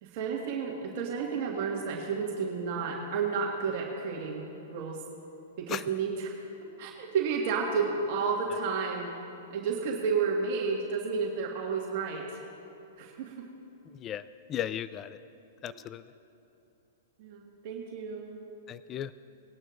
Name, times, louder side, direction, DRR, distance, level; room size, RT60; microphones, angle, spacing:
voice 1, 0.0-5.0 5.6-6.3 6.8-9.1 9.5-12.4 13.0-13.5 15.6-15.7 17.2-18.4, right 5 dB, 55° right, -1 dB, 1.7 m, -31 dB
voice 2, 13.9-15.2 15.6-16.1 18.7-19.1, left 10 dB, 30° left, 15 dB, 0.3 m, -36 dB
20.0 x 11.0 x 2.6 m, 2.9 s
hypercardioid pair, 115°, 0 cm